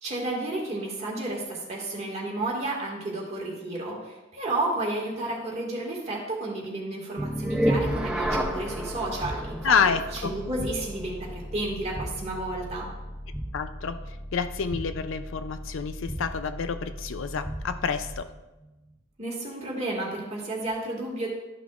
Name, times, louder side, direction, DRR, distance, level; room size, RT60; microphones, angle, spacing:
voice 1, 0.0-9.7 10.2-12.9 19.2-21.3, right 2 dB, 35° right, -3 dB, 1.9 m, -32 dB
sound 1, 7.2-18.3, equal, 5° right, 0.6 m, -33 dB
voice 2, 9.6-10.3 13.5-18.3, left 6 dB, 65° left, 10 dB, 0.5 m, -28 dB
12.5 x 5.9 x 2.4 m, 1.1 s
head